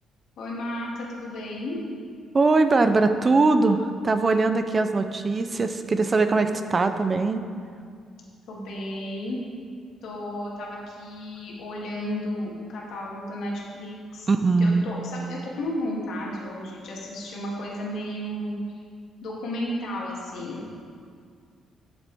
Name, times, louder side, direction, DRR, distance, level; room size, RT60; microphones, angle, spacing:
voice 1, 0.4-1.8 8.5-9.4 10.0-14.3 14.6-18.6 19.2-20.7, left 1 dB, 70° left, -3 dB, 2.0 m, -33 dB
voice 2, 2.3-7.4 14.3-14.9, right 3 dB, 25° right, 9 dB, 0.4 m, -21 dB
11.5 x 7.3 x 3.5 m, 2.2 s
cardioid pair, 140°, 0 cm